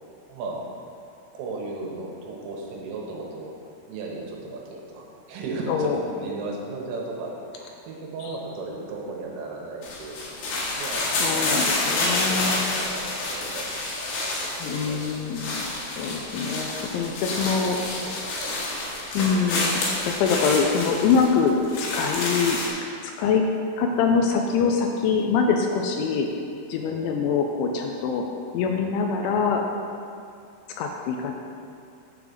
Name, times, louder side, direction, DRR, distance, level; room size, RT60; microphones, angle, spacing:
voice 1, 0.3-0.7 1.3-3.5 3.9-10.5 10.8-13.7 14.0-15.1 17.0-18.5 26.8-27.0, right 3 dB, 80° right, -2 dB, 3.6 m, -36 dB
voice 2, 5.7-6.0 11.2-12.6 14.6-15.7 16.0-17.8 19.1-22.6 23.2-23.5 23.8-26.3 26.7-28.3 28.5-29.6 30.8-31.3, left 5 dB, 85° left, 2 dB, 2.8 m, -24 dB
sound 1, 9.8-22.7, left 2 dB, 65° left, 3.2 m, -28 dB
10.0 x 3.9 x 6.1 m, 2.4 s
omnidirectional pair, 5.7 m